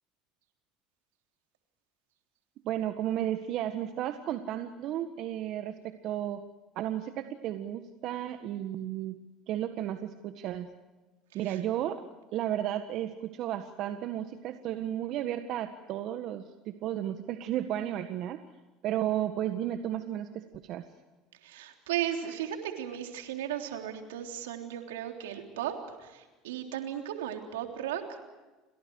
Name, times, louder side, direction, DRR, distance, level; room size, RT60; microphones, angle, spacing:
voice 1, 2.6-6.4 6.7-9.2 9.5-10.7 11.3-12.1 12.3-18.4 18.8-20.8, right 11 dB, 60° right, 8 dB, 1.6 m, -33 dB
voice 2, 21.4-28.2, right 10 dB, 85° right, 4 dB, 3.5 m, -36 dB
29.5 x 26.0 x 4.8 m, 1.2 s
hypercardioid pair, 80°, 0 cm